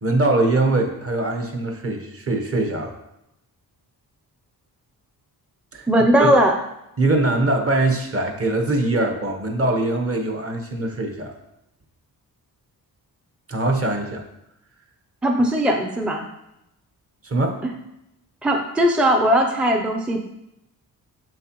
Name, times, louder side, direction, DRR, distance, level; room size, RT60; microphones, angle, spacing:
voice 1, 0.0-2.9 5.7-5.9 6.2-6.3 7.0-11.3 13.5-14.2 17.2-17.6, right 2 dB, 35° right, 4 dB, 1.2 m, -22 dB
voice 2, 5.9-6.5 15.2-16.3 17.6-17.7 18.4-20.3, equal, 5° right, 3 dB, 0.5 m, -19 dB
7.7 x 6.4 x 3.1 m, 0.86 s
cardioid pair, 110°, 39 cm